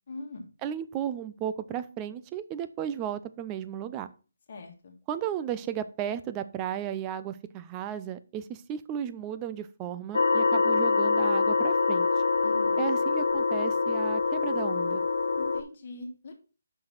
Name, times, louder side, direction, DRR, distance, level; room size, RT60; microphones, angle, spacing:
voice 1, 0.1-0.5 4.5-4.9 12.4-12.9 15.3-16.3, left 2 dB, 40° left, 3 dB, 1.8 m, -41 dB
voice 2, 0.6-4.1 5.1-12.1 12.8-15.0, right 10 dB, 15° right, 12 dB, 0.4 m, -34 dB
sound 1, 10.1-15.6, left 4 dB, 70° left, 1.1 m, -25 dB
6.3 x 5.9 x 5.9 m, 0.34 s
hypercardioid pair, 170°, 0 cm